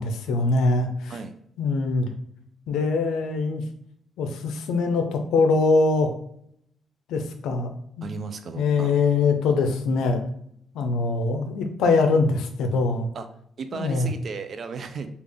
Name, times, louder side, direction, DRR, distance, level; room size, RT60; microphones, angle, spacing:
voice 1, 0.0-1.1 1.6-2.1 2.7-3.6 4.2-6.1 7.1-7.7 8.0-8.1 8.5-10.3 10.7-13.1 13.7-14.1, left 3 dB, 85° left, 6 dB, 0.5 m, -23 dB
voice 2, 8.0-8.9 13.1-13.3 13.6-15.1, right 5 dB, 50° right, 8 dB, 0.3 m, -35 dB
3.3 x 2.4 x 3.4 m, 0.68 s
cardioid pair, 90°, 0 cm